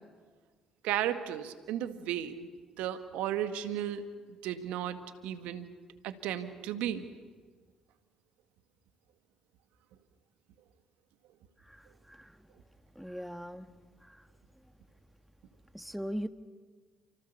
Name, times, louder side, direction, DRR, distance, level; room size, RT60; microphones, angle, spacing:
voice 1, 0.8-2.5 2.8-4.1 4.4-5.7 6.0-7.1, right 11 dB, 70° right, 9 dB, 2.0 m, -34 dB
voice 2, 11.6-12.4 12.9-13.7 14.0-14.3 15.7-16.3, equal, ahead, 9 dB, 1.8 m, -40 dB
30.0 x 27.0 x 7.0 m, 1.5 s
hypercardioid pair, 50°, 2 cm